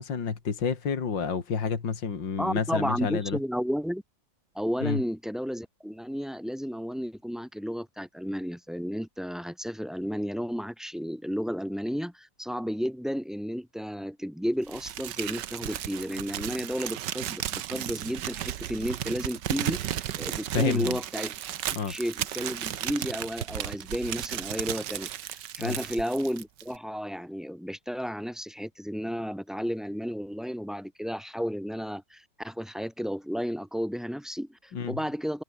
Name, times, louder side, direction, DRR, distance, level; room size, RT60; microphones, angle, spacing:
voice 1, 0.0-3.4 4.8-5.0 20.5-21.0 21.7-21.9 25.6-25.8 34.7-35.0, left 6 dB, 70° left, 3.1 m, -29 dB
voice 2, 2.4-4.0 4.5-21.3 21.9-35.4, equal, ahead, 3.4 m, -32 dB
Crumpling crinkling, 14.7-26.8, right 11 dB, 70° right, 1.5 m, -34 dB
omnidirectional pair, 2.0 m